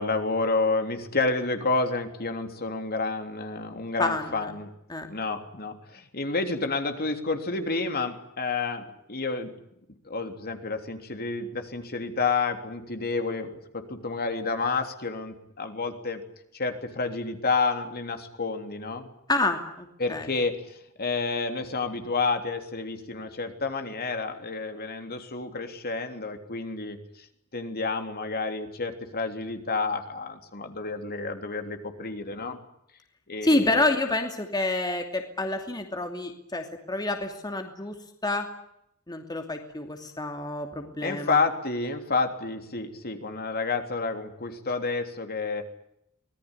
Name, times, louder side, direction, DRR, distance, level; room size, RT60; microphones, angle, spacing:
voice 1, 0.0-4.7 5.1-9.5 10.0-13.6 13.9-16.2 16.5-19.1 20.0-27.3 27.5-32.6 33.3-33.8 41.0-45.6, left 3 dB, 45° left, 6 dB, 3.4 m, -30 dB
voice 2, 4.0-4.5 4.9-5.1 19.3-20.3 33.4-37.9 38.2-38.5 39.1-41.4, left 2 dB, 20° left, 5 dB, 2.7 m, -28 dB
25.5 x 20.0 x 9.9 m, 0.79 s
head